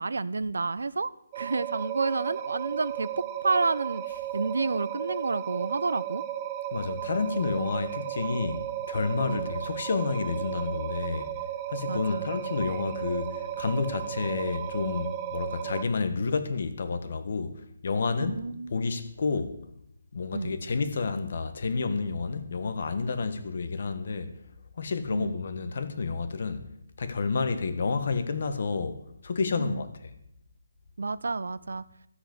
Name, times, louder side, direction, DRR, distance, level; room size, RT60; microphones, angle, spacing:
voice 1, 0.0-3.1 3.4-4.0 4.3-6.2 8.4-8.6 9.2-9.5 11.9-12.3 18.2-18.7 20.3-20.5 25.1-25.4 29.6-29.8 31.0-31.8, right 3 dB, 80° right, 0.7 m, -30 dB
sound 1, 1.3-15.8, right 11 dB, 15° right, 0.6 m, -35 dB
voice 2, 6.7-11.3 11.7-18.4 18.7-19.6 20.1-24.3 24.8-26.7 27.0-30.1, left 4 dB, 45° left, 1.5 m, -30 dB
13.5 x 8.0 x 7.9 m
hypercardioid pair, 175°, 0 cm